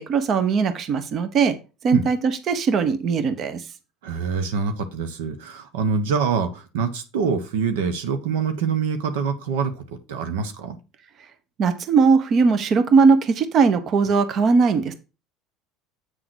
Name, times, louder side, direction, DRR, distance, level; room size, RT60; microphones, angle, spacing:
voice 1, 0.0-1.6 1.8-3.6 11.6-14.9, right 5 dB, 50° right, 11 dB, 1.1 m, -19 dB
voice 2, 4.0-9.8 10.1-10.8, right 5 dB, 85° right, 8 dB, 1.2 m, -25 dB
8.4 x 3.8 x 6.2 m, 0.30 s
supercardioid pair, 90°, 0 cm